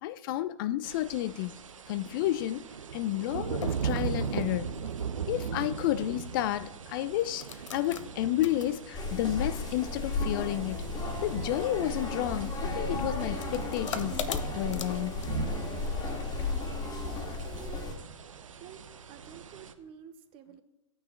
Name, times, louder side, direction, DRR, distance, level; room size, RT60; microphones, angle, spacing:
voice 1, 0.0-1.6 1.9-2.7 2.9-4.8 5.3-10.9 11.2-15.3, left 14 dB, 40° left, 0.4 m, -31 dB
sound 1, 0.8-19.7, right 7 dB, 75° right, 0.8 m, -39 dB
sound 2, 3.2-16.3, left 6 dB, 70° left, 0.9 m, -46 dB
sound 3, 8.9-17.9, left 3 dB, 25° left, 1.9 m, -34 dB
voice 2, 16.3-17.8 18.6-18.8 19.1-20.6, right 10 dB, 35° right, 1.0 m, -50 dB
14.0 x 9.2 x 3.7 m
figure-of-eight pair, 105°, 17 cm